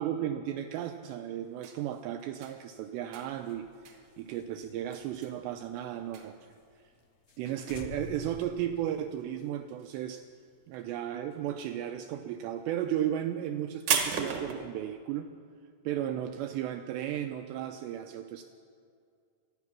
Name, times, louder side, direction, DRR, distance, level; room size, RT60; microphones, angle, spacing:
voice 1, 0.0-3.7 4.2-6.5 7.4-10.2 10.7-15.3 15.9-18.4, right 11 dB, 90° right, 7 dB, 2.5 m, -34 dB
sound 1, 1.4-9.4 9.7-10.4 10.6-14.6, right 6 dB, 70° right, 1.8 m, -36 dB
sound 2, 3.4-6.2 6.5-6.6 6.9-7.0 7.3-7.4 7.7-9.4, left 5 dB, 85° left, 3.3 m, -48 dB
25.0 x 9.6 x 6.0 m, 2.3 s
omnidirectional pair, 5.6 m